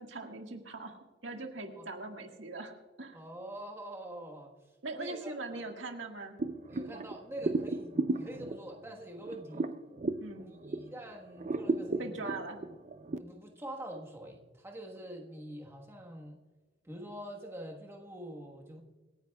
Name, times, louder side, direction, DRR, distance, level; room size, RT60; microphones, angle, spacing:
voice 1, 0.0-3.2 4.8-6.4 10.2-10.5 12.0-12.6, right 3 dB, 70° right, 4 dB, 1.7 m, -41 dB
voice 2, 3.1-4.5 4.9-5.6 6.7-9.7 10.4-12.3 13.2-16.4 16.8-18.8, right 1 dB, 15° right, 1 dB, 1.3 m, -45 dB
sound 1, 6.4-11.0 11.4-13.2, right 3 dB, 40° right, 0.5 m, -34 dB
26.5 x 10.0 x 2.3 m, 1.3 s
head